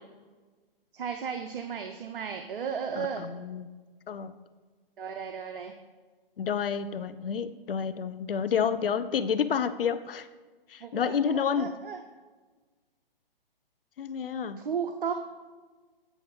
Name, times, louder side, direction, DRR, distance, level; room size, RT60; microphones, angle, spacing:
voice 1, 0.9-3.2 5.0-5.7 10.8-12.0 14.6-15.1, right 7 dB, 65° right, 6 dB, 0.7 m, -34 dB
voice 2, 3.0-3.7 4.1-4.3 6.4-10.3 10.7-11.7 14.0-14.6, left 7 dB, 65° left, 12 dB, 0.6 m, -29 dB
8.5 x 4.2 x 5.2 m, 1.4 s
figure-of-eight pair, 135°, 30 cm